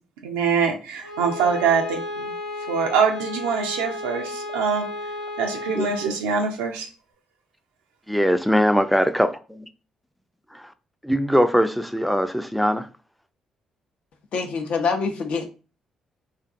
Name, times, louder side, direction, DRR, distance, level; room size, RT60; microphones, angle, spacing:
voice 1, 0.2-2.2 2.7-4.8 5.4-6.9, right 6 dB, 80° right, 0.3 m, -24 dB
Bowed string instrument, 1.0-6.2, left 1 dB, 80° left, 1.0 m, -33 dB
voice 2, 8.1-9.7 11.0-12.8, equal, ahead, 0.3 m, -21 dB
voice 3, 14.3-15.5, left 4 dB, 60° left, 0.6 m, -25 dB
2.5 x 2.4 x 2.4 m
hypercardioid pair, 45°, 2 cm